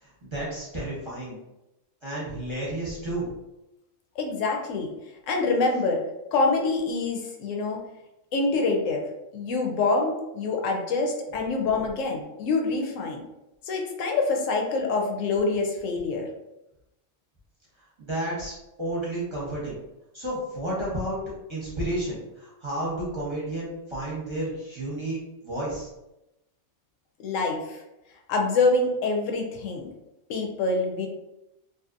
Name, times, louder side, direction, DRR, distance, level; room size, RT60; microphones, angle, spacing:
voice 1, 0.0-1.4 2.0-3.3 18.0-19.8 20.1-21.2 21.5-25.2 25.4-25.9, right 1 dB, 30° right, -7 dB, 0.7 m, -31 dB
voice 2, 4.2-4.9 5.3-6.0 6.3-7.8 8.3-9.0 9.3-13.2 13.6-16.3 27.2-27.8 28.3-29.9 30.3-31.1, left 3 dB, 90° left, 2 dB, 1.0 m, -25 dB
2.7 x 2.4 x 2.4 m, 0.91 s
omnidirectional pair, 1.3 m